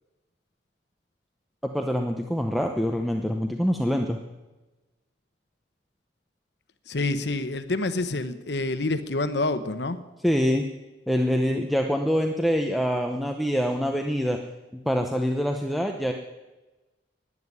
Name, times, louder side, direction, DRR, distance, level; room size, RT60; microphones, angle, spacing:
voice 1, 1.6-4.2 10.2-10.7 11.1-14.4 14.9-16.1, equal, ahead, 3 dB, 0.8 m, -25 dB
voice 2, 6.9-10.0, left 2 dB, 65° left, 11 dB, 1.0 m, -27 dB
12.5 x 9.7 x 9.6 m, 1.1 s
head